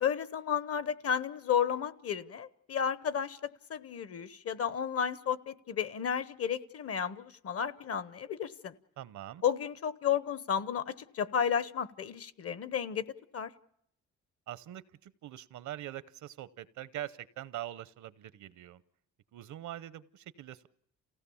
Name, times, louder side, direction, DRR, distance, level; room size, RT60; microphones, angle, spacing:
voice 1, 0.0-8.7 9.4-13.1 13.3-13.5, left 8 dB, 50° left, 16 dB, 0.9 m, -32 dB
voice 2, 9.0-9.4 14.5-18.8 19.3-20.7, right 12 dB, 70° right, 16 dB, 0.8 m, -43 dB
28.5 x 16.5 x 7.0 m, 0.73 s
cardioid pair, 90°, 30 cm